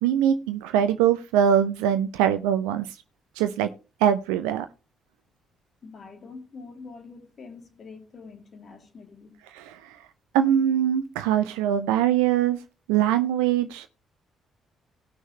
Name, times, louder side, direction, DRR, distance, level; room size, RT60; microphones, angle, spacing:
voice 1, 0.0-3.0 3.4-3.7 4.0-4.7 9.5-10.0 10.3-12.6 12.9-13.9, right 10 dB, 70° right, 0.6 m, -22 dB
voice 2, 5.8-9.3, left 4 dB, 40° left, 2.8 m, -45 dB
18.5 x 6.3 x 3.2 m
figure-of-eight pair, 45°, 0 cm